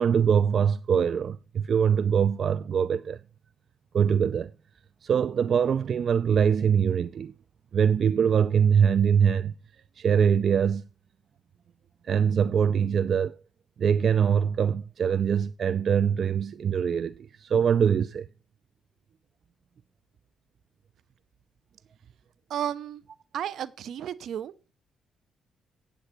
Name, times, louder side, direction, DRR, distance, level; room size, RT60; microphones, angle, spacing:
voice 1, 0.0-3.2 3.9-4.5 5.0-7.3 7.7-9.5 10.0-10.9 12.0-13.4 13.8-18.3, right 7 dB, 55° right, 0.4 m, -23 dB
voice 2, 22.5-23.0 23.3-24.5, right 10 dB, 70° right, 0.8 m, -33 dB
8.7 x 8.4 x 5.8 m
cardioid pair, 90°, 0 cm